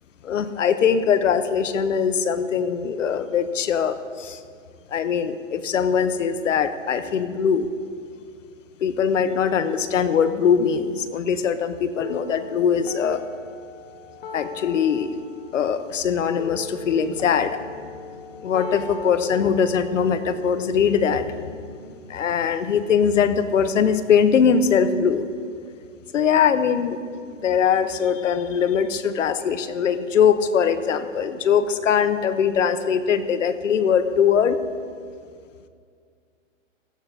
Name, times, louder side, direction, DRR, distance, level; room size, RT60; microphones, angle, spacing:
voice 1, 0.2-4.4 4.9-7.7 8.8-13.2 14.3-15.1 15.5-17.6 18.4-21.3 22.1-25.3 26.1-27.0 27.2-34.6, left 7 dB, 70° left, 11 dB, 0.9 m, -21 dB
sound 1, 12.0-22.0, left 4 dB, 45° left, 1.0 m, -39 dB
sound 2, 16.4-21.9, equal, 15° left, 0.3 m, -44 dB
16.5 x 13.0 x 2.8 m, 2.2 s
hypercardioid pair, 150°, 39 cm